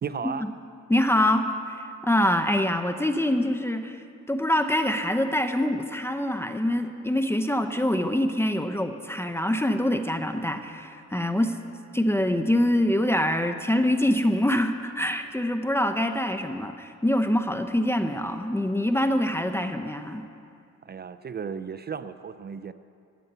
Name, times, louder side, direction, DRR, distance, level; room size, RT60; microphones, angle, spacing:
voice 1, 0.0-0.5 20.8-22.7, right 6 dB, 35° right, 12 dB, 0.5 m, -34 dB
voice 2, 0.9-4.0 4.3-11.5 11.9-20.2, left 1 dB, 10° left, 7 dB, 0.8 m, -25 dB
14.5 x 9.2 x 8.1 m, 2.4 s
cardioid pair, 90°, 30 cm